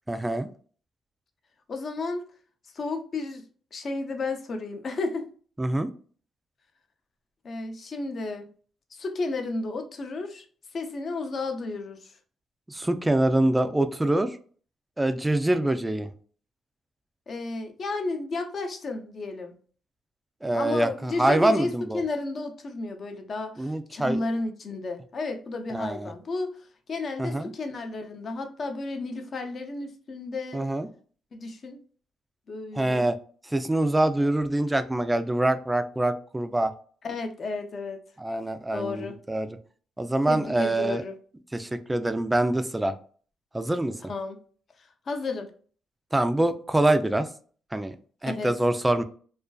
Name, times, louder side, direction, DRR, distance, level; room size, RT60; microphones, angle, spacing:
voice 1, 0.1-0.5 5.6-5.9 12.7-14.4 15.0-16.1 20.4-22.0 23.6-24.2 25.7-26.1 27.2-27.5 30.5-30.9 32.7-33.1 33.5-36.7 38.2-39.5 40.0-41.0 41.5-42.9 43.5-43.9 46.1-47.3 47.7-47.9 48.2-49.0, right 1 dB, 10° right, 0.3 m, -25 dB
voice 2, 1.7-2.3 2.7-3.4 3.7-5.3 7.4-8.5 8.9-10.5 10.7-12.1 17.3-19.6 20.5-26.6 26.9-30.6 31.3-31.8 32.5-33.1 37.0-38.0 38.7-39.1 40.3-41.2 44.1-44.4 45.1-45.5 48.3-48.5, left 3 dB, 45° left, 0.5 m, -32 dB
2.4 x 2.2 x 2.2 m
cardioid pair, 90°, 0 cm